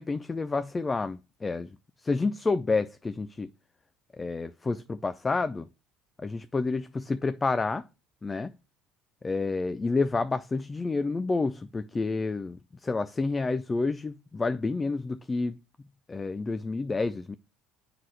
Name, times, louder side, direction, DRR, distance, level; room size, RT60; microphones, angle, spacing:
voice 1, 0.0-1.7 2.0-3.5 4.1-5.7 6.2-7.9 8.2-8.5 9.2-15.6 16.1-17.4, left 3 dB, 20° left, 0.5 m, -29 dB
7.5 x 5.9 x 3.2 m
supercardioid pair, 80°, 0 cm